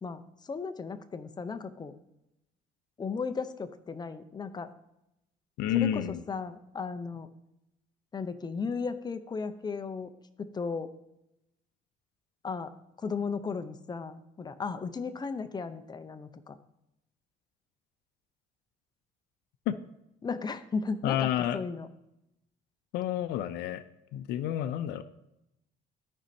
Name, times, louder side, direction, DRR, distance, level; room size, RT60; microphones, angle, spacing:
voice 1, 0.0-2.0 3.0-4.7 5.7-7.3 8.1-10.1 10.4-10.9 12.4-12.7 13.0-16.6 20.2-21.9, left 5 dB, 25° left, 9 dB, 0.7 m, -35 dB
voice 2, 5.6-6.2 19.7-19.8 21.0-21.6 22.9-23.8 24.1-25.0, left 11 dB, 85° left, 9 dB, 0.5 m, -29 dB
13.5 x 5.3 x 2.8 m, 0.86 s
cardioid pair, 110°, 17 cm